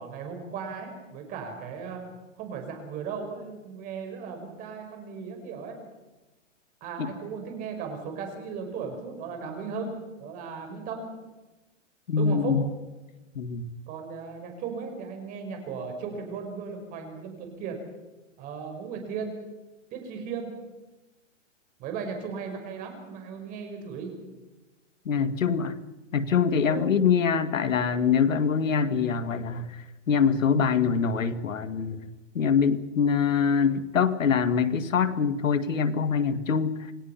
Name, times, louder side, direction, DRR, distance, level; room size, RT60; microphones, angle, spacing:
voice 1, 0.0-2.0 2.4-5.8 6.8-11.1 12.2-12.6 13.9-17.8 18.4-19.4 19.9-20.5 21.8-24.1 26.7-26.9, right 5 dB, 20° right, 4 dB, 5.1 m, -36 dB
voice 2, 12.1-12.7 13.4-13.7 25.1-25.8 26.1-32.1 32.3-36.9, left 6 dB, 85° left, 10 dB, 2.0 m, -24 dB
28.5 x 19.5 x 5.8 m, 1.1 s
hypercardioid pair, 160°, 38 cm